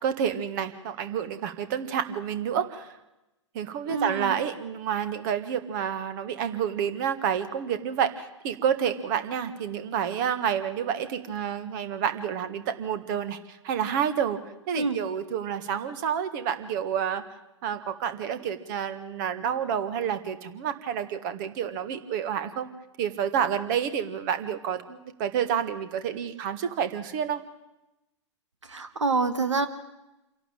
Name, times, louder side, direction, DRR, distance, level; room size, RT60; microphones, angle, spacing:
voice 1, 0.0-2.9 3.5-14.4 14.7-17.2 17.6-22.7 23.0-27.4, right 8 dB, 40° right, 12 dB, 1.6 m, -29 dB
voice 2, 3.9-4.3 14.7-15.0 28.7-29.7, right 4 dB, 75° right, 10 dB, 1.5 m, -26 dB
26.5 x 11.5 x 9.0 m, 0.97 s
figure-of-eight pair, 110°, 16 cm